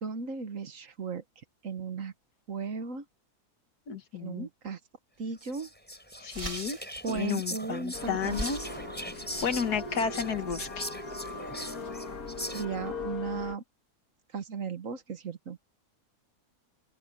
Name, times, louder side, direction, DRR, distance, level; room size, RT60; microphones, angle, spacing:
voice 1, 0.0-1.2 1.6-2.1 2.5-3.0 4.2-4.8 5.2-5.7 7.0-8.4 12.5-13.6 14.3-15.6, right 5 dB, 60° right, 1.6 m, -36 dB
voice 2, 3.9-4.5 6.2-6.8 7.1-8.6 9.4-10.9, left 7 dB, 90° left, 2.0 m, -32 dB
sound 1, 5.2-5.3 5.7-5.8 6.1-13.1, right 2 dB, 20° right, 1.9 m, -45 dB
Whispering, 5.4-12.9, equal, 5° left, 6.3 m, -41 dB
sound 2, 7.9-13.6, left 3 dB, 65° left, 2.3 m, -39 dB
open air
omnidirectional pair, 1.6 m